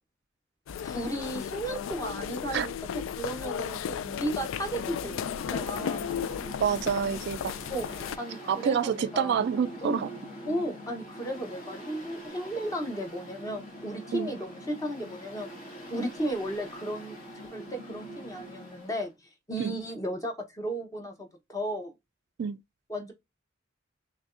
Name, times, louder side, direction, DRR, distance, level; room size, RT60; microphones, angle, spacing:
sound 1, 0.7-8.2, left 8 dB, 75° left, 0.3 m, -35 dB
voice 1, 0.8-2.7 3.1-6.1 7.7-7.9 8.2-9.4 9.8-10.0 10.5-15.5 15.9-19.1 19.5-21.9 22.9-23.1, right 1 dB, 15° left, 0.9 m, -34 dB
Mechanical fan, 4.2-19.1, equal, 45° left, 1.5 m, -44 dB
voice 2, 6.6-7.6 8.5-10.1 14.1-14.3 19.6-19.8 22.4-22.6, right 7 dB, 55° right, 0.3 m, -27 dB
6.0 x 2.2 x 2.5 m
head